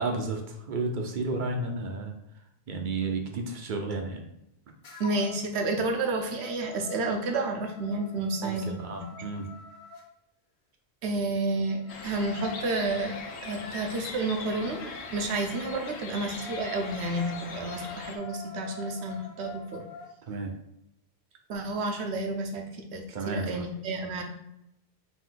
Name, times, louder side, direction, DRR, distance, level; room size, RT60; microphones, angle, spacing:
voice 1, 0.0-2.1 2.7-4.2 8.4-9.5 20.3-20.5 23.1-23.6, right 3 dB, 55° right, 3 dB, 0.7 m, -32 dB
sound 1, 4.8-5.5 5.9-10.1 11.5-20.1, left 4 dB, 55° left, 0.8 m, -45 dB
voice 2, 5.0-9.2 11.0-19.8 21.5-24.2, right 2 dB, 75° right, 3 dB, 1.0 m, -31 dB
sound 2, 11.9-18.2, left 4 dB, 85° left, 0.9 m, -41 dB
4.0 x 2.6 x 3.8 m, 0.81 s
omnidirectional pair, 1.1 m